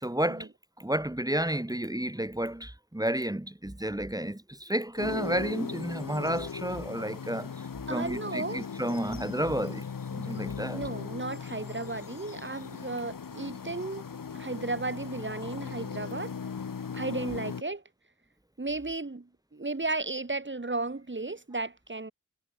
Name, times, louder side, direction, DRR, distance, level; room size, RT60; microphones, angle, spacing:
voice 1, 0.0-0.5 0.8-7.5 7.9-9.8 10.1-10.8, right 1 dB, 10° right, 1.3 m, -31 dB
sound 1, 5.0-17.6, left 6 dB, 85° left, 1.6 m, -38 dB
voice 2, 7.9-8.7 10.7-14.0 14.3-16.3 16.9-17.8 18.6-22.1, right 3 dB, 35° right, 2.8 m, -34 dB
wide cardioid pair, 60°, 33 cm